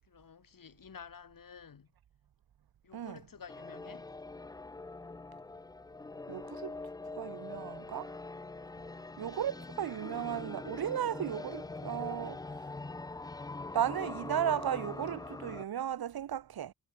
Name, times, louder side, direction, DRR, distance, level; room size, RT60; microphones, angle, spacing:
voice 1, 0.0-1.9 2.8-4.1, left 6 dB, 65° left, 7.0 m, -51 dB
sound 1, 3.5-15.6, left 3 dB, 10° left, 0.3 m, -43 dB
voice 2, 6.3-6.8 7.2-8.1 9.2-12.4 13.7-16.7, right 10 dB, 90° right, 1.2 m, -35 dB
wide cardioid pair, 120°, 36 cm